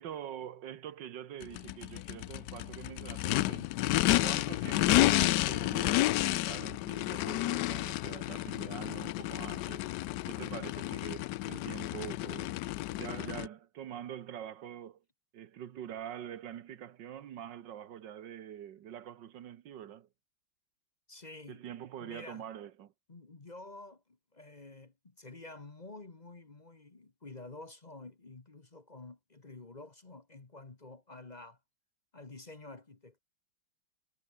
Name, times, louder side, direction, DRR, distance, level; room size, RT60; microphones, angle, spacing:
voice 1, 0.0-3.7 4.2-9.9 10.3-12.6 13.0-15.0 15.3-20.1 21.5-22.9, right 10 dB, 60° right, 1.6 m, -45 dB
Race car auto racing / Idling / Accelerating revving vroom, 1.4-13.5, left 16 dB, 85° left, 0.9 m, -31 dB
voice 2, 21.1-21.6 22.0-22.5 23.1-24.0 24.3-31.6 32.1-33.2, left 2 dB, 25° left, 1.2 m, -49 dB
omnidirectional pair, 2.4 m